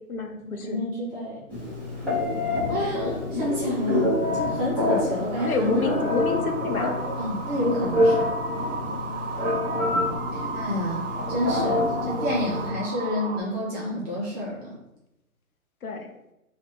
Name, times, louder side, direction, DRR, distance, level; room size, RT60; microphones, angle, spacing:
voice 1, 0.1-0.8 5.5-6.9 8.8-9.3 15.8-16.1, left 3 dB, 75° left, 4 dB, 0.8 m, -29 dB
voice 2, 0.6-1.4 2.7-5.9 7.2-8.3 10.3-14.7, left 1 dB, 15° right, -7 dB, 0.8 m, -29 dB
Telephone, 1.5-12.7, left 1 dB, 5° left, 1.0 m, -27 dB
sound 1, 4.2-13.4, right 5 dB, 55° right, 0.6 m, -36 dB
2.9 x 2.8 x 3.4 m, 0.89 s
hypercardioid pair, 145°, 43 cm